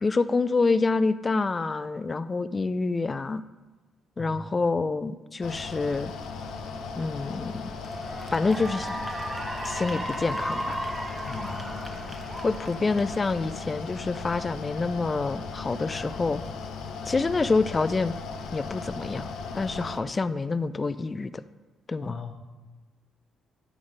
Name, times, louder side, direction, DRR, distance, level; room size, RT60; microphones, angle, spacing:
voice 1, 0.0-3.4 4.2-6.1 6.9-7.7 8.3-9.0 9.6-10.8 12.4-16.4 17.1-18.1 18.5-21.4 21.9-22.2, left 3 dB, 30° left, 14 dB, 0.3 m, -27 dB
Mechanical fan, 5.4-20.0, left 4 dB, 85° left, 0.7 m, -37 dB
Cheering / Applause, 7.0-7.3 7.7-14.3, right 1 dB, 15° right, 1.0 m, -36 dB
voice 2, 11.2-12.1 22.0-22.3, left 4 dB, 55° left, 0 dB, 1.2 m, -39 dB
12.0 x 4.0 x 5.2 m, 1.2 s
cardioid pair, 90°, 0 cm